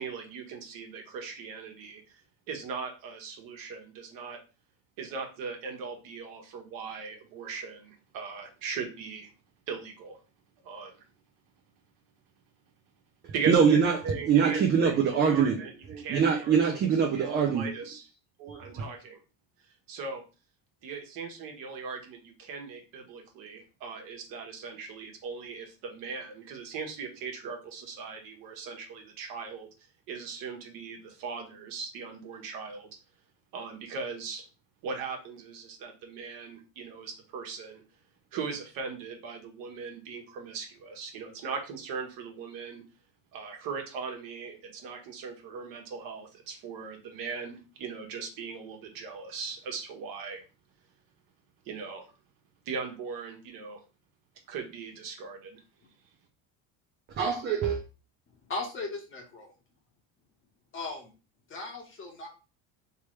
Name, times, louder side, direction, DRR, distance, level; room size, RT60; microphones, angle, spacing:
voice 1, 0.0-2.0 2.5-4.4 5.0-9.3 9.7-10.2 10.6-11.0 13.3-16.5 16.9-18.1 18.6-19.2 19.9-20.2 20.8-29.7 30.1-32.9 33.5-34.4 34.8-37.8 38.3-42.8 43.3-50.4 51.6-52.0 52.6-53.8 54.5-55.6, right 5 dB, 60° right, 2 dB, 1.3 m, -39 dB
voice 2, 13.5-14.0 14.3-15.6 15.9-17.7 18.4-18.8 57.2-57.8, right 6 dB, 30° right, 3 dB, 0.5 m, -24 dB
voice 3, 58.5-59.5 60.7-61.1 61.5-62.3, left 3 dB, 35° left, 2 dB, 1.1 m, -37 dB
3.3 x 3.1 x 3.1 m, 0.33 s
cardioid pair, 135°, 37 cm